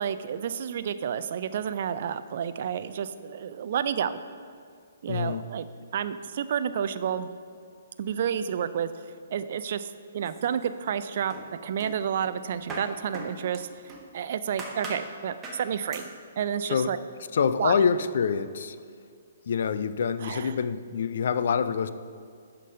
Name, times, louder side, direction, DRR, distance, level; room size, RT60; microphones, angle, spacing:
voice 1, 0.0-4.1 5.0-5.7 5.9-7.3 8.0-8.9 9.3-11.3 11.6-13.7 14.1-16.1 16.4-17.0 17.6-17.8 20.2-20.6, right 8 dB, 50° right, 12 dB, 0.4 m, -30 dB
voice 2, 5.1-5.4 16.7-16.9 17.3-18.8 19.5-21.9, left 6 dB, 55° left, 13 dB, 0.4 m, -26 dB
sound 1, 10.2-11.0 11.3-14.1 14.6-15.1 15.4-15.7 15.9-16.2, right 2 dB, 15° right, 1.2 m, -40 dB
11.0 x 3.9 x 5.4 m, 2.2 s
figure-of-eight pair, 125°, 0 cm